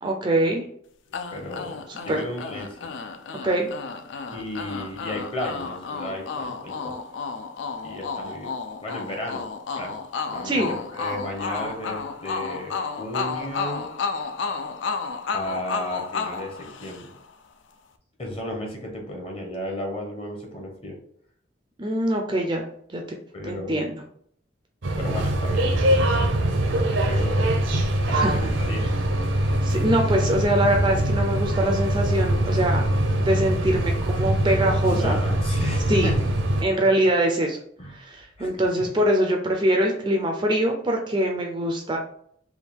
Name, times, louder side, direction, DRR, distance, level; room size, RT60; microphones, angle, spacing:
voice 1, 0.0-0.6 1.9-2.2 3.4-3.7 10.4-10.7 21.8-22.6 22.9-23.0 23.4-24.0 28.1-28.4 29.6-32.9 33.2-35.1 35.9-36.1 36.6-37.6 37.9-42.0, right 1 dB, 25° right, 2 dB, 0.4 m, -23 dB
sound 1, 1.1-17.3, left 4 dB, 70° left, 0.4 m, -32 dB
voice 2, 1.1-2.9 4.3-7.0 7.8-9.4 9.7-10.0 10.3-13.9 15.3-17.1 18.2-21.0 23.3-23.9 25.0-25.7 26.4-27.6 28.1-28.9 34.9-36.2 37.8-38.1 38.4-38.8, left 1 dB, 30° left, 1 dB, 0.9 m, -34 dB
sound 2, 24.8-36.6, right 1 dB, 75° right, 0.6 m, -23 dB
3.5 x 2.3 x 4.4 m, 0.65 s
head